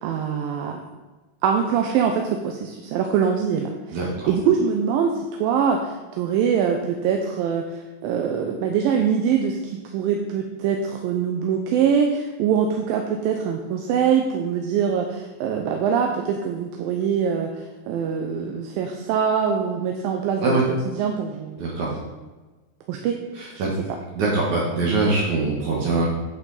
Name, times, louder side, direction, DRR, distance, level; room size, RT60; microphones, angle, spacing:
voice 1, 0.0-0.8 1.4-4.0 4.3-20.6 20.9-22.0 22.9-23.2 23.6-23.7, right 7 dB, 90° right, 3 dB, 2.5 m, -23 dB
voice 2, 3.9-4.3 20.4-20.6 21.6-21.9 23.4-23.7 24.2-26.1, right 3 dB, 65° right, -3 dB, 2.7 m, -23 dB
8.4 x 8.3 x 4.1 m, 1.2 s
omnidirectional pair, 4.0 m